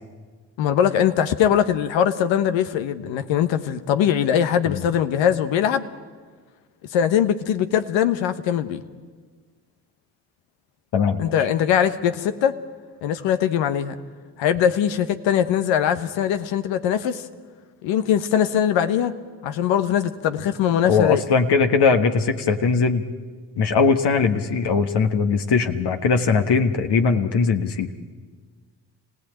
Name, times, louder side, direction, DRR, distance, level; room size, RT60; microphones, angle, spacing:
voice 1, 0.6-5.9 6.9-8.8 11.2-12.6 13.0-14.0 14.4-17.2 17.8-19.1 19.4-21.2, left 9 dB, 80° left, 10 dB, 1.2 m, -21 dB
voice 2, 10.9-11.3 20.9-23.0 23.6-27.9, left 5 dB, 60° left, 6 dB, 1.6 m, -20 dB
26.5 x 17.5 x 8.9 m, 1.5 s
hypercardioid pair, 50°, 45 cm